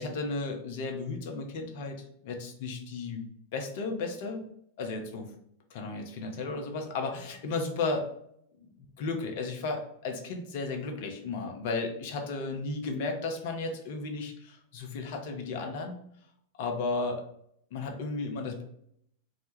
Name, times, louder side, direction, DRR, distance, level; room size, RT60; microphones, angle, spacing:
voice 1, 0.0-3.2 3.5-4.4 4.8-5.3 5.7-8.1 8.8-16.0 16.6-17.2 17.7-18.6, left 3 dB, 50° left, 4 dB, 0.4 m, -34 dB
2.1 x 2.0 x 3.0 m, 0.71 s
figure-of-eight pair, 90°, 0 cm